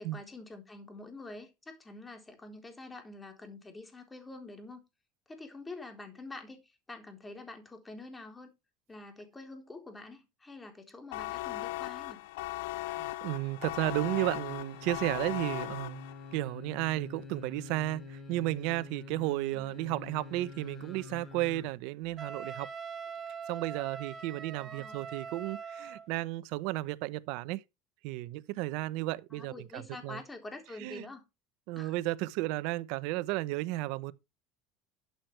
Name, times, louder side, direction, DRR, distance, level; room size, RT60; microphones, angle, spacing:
voice 1, 0.0-4.8 5.3-8.5 8.9-12.2 19.5-19.7 24.5-25.1 29.3-31.2 31.8-31.9, left 2 dB, 15° left, 3.9 m, -47 dB
sound 1, 11.1-16.4, left 17 dB, 85° left, 0.6 m, -38 dB
voice 2, 12.9-16.0 16.3-22.7 23.5-27.6 28.0-30.2 30.8-31.0 31.7-34.1, right 18 dB, 70° right, 0.9 m, -33 dB
sound 2, 13.9-21.7 22.1-22.2, left 4 dB, 30° left, 3.6 m, -47 dB
Wind instrument woodwind instrument, 22.2-26.1, right 6 dB, 30° right, 2.1 m, -42 dB
12.5 x 7.9 x 3.4 m
supercardioid pair, 105°, 0 cm